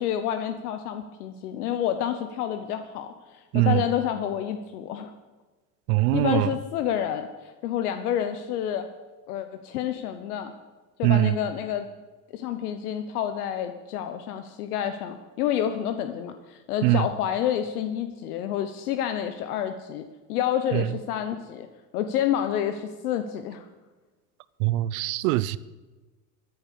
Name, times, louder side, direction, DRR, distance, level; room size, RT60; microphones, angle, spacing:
voice 1, 0.0-3.1 3.5-5.1 6.1-8.9 9.3-10.5 11.0-11.9 12.3-20.0 20.3-21.7 21.9-23.6, left 10 dB, 85° left, 1.1 m, -29 dB
voice 2, 3.5-3.8 5.9-6.5 11.0-11.4 16.8-17.1 20.7-20.9 24.6-25.6, right 16 dB, 75° right, 0.8 m, -22 dB
14.0 x 10.5 x 6.8 m
supercardioid pair, 95°, 44 cm